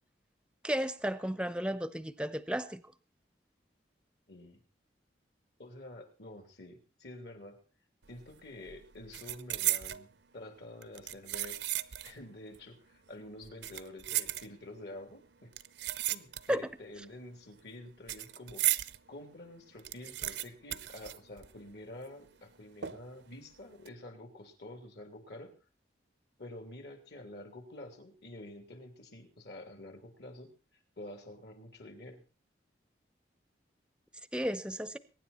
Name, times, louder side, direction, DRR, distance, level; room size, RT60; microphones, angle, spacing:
voice 1, 0.6-2.8 16.5-16.7 34.3-35.0, equal, 5° right, 0.7 m, -33 dB
voice 2, 4.3-4.6 5.6-7.6 8.1-11.6 12.0-15.5 16.0-18.6 19.1-25.5 26.4-30.5 31.0-32.2, left 1 dB, 65° left, 3.3 m, -48 dB
sound 1, 8.1-8.4 8.6-10.1 10.8-12.2 12.5-12.6 13.4-14.9 15.5-16.7 17.0-19.0 19.4-19.5 19.7-21.8 22.0-22.1 22.8-23.3 23.7-23.9, right 14 dB, 75° right, 0.7 m, -35 dB
23.0 x 10.0 x 4.3 m
head